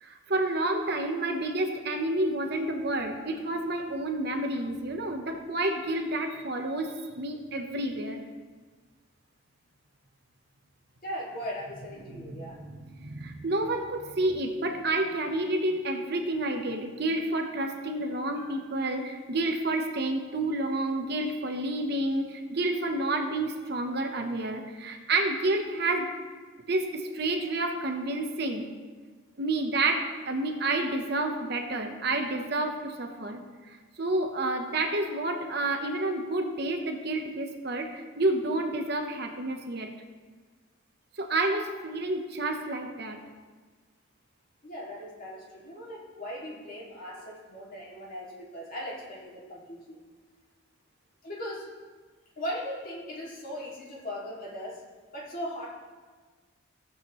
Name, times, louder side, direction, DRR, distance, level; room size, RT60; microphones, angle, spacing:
voice 1, 0.0-8.2 12.1-26.1 26.7-28.7 29.4-33.4 33.7-39.9 41.2-43.2, right 2 dB, 50° right, 4 dB, 0.9 m, -29 dB
voice 2, 11.0-12.6 44.6-50.0 51.2-51.7 52.4-54.8 55.1-55.7, equal, 45° left, -4 dB, 2.3 m, -38 dB
17.0 x 7.3 x 3.1 m, 1.4 s
head